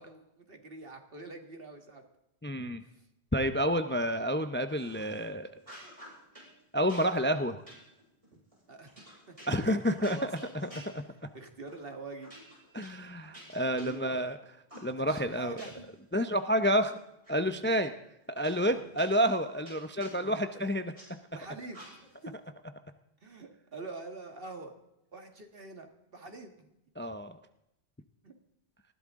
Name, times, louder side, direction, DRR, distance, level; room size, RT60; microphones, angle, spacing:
voice 1, 0.0-2.0 2.8-3.0 8.3-8.4 8.7-9.7 10.0-10.5 11.3-12.3 13.3-14.3 15.1-15.9 17.5-17.7 18.7-18.9 20.2-20.4 21.3-21.8 22.2-22.4 23.2-24.7 25.1-26.7 28.2-28.3, right 3 dB, 60° right, 5 dB, 2.0 m, -46 dB
voice 2, 2.4-2.8 3.3-5.5 6.7-7.6 9.5-10.7 12.7-14.4 14.8-15.6 16.1-17.0 17.3-17.9 18.3-20.9 27.0-27.4, equal, 15° left, 9 dB, 0.5 m, -29 dB
sound 1, 4.8-5.3 5.6-6.5 6.9-11.4 11.7-11.9 12.2-14.3 14.7-16.0 16.3-17.3 17.7-17.8 18.4-21.1 21.7-22.3, equal, 30° right, 5.6 m, -52 dB
19.5 x 15.0 x 3.7 m, 0.87 s
omnidirectional pair, 1.1 m